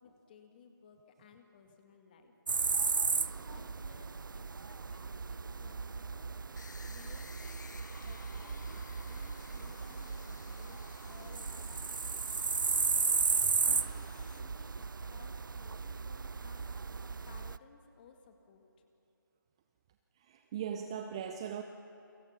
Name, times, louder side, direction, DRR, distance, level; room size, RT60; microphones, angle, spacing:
voice 1, 0.0-6.4 6.8-7.7 8.0-12.0 12.6-16.9 17.2-18.7, left 5 dB, 25° left, 4 dB, 2.1 m, -59 dB
sound 1, 2.5-17.6, right 5 dB, 65° right, 0.6 m, -35 dB
sound 2, 6.5-14.4, left 4 dB, 55° left, 1.4 m, -55 dB
voice 2, 13.4-14.2 20.2-21.6, right 8 dB, 15° right, 7 dB, 0.5 m, -41 dB
29.0 x 24.0 x 5.9 m, 2.9 s
figure-of-eight pair, 160°, 12 cm